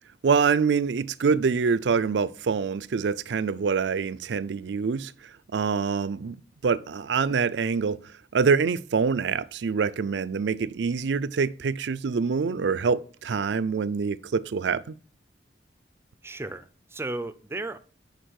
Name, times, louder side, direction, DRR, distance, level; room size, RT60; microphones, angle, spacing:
voice 1, 0.2-5.1 5.5-6.4 6.6-14.9, right 5 dB, 70° right, 0.4 m, -25 dB
voice 2, 16.2-17.8, right 2 dB, 15° right, 0.5 m, -34 dB
6.4 x 5.1 x 6.3 m
head